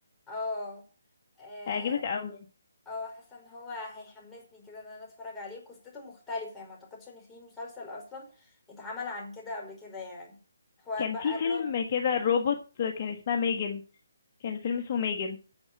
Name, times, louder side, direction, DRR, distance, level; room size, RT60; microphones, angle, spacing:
voice 1, 0.3-0.8 1.4-2.0 2.8-10.4 10.8-11.7, left 3 dB, 10° left, -2 dB, 5.0 m, -40 dB
voice 2, 1.7-2.4 11.0-13.8 14.4-15.4, left 6 dB, 40° left, 4 dB, 1.5 m, -29 dB
9.6 x 8.0 x 7.7 m, 0.36 s
figure-of-eight pair, 155°, 0 cm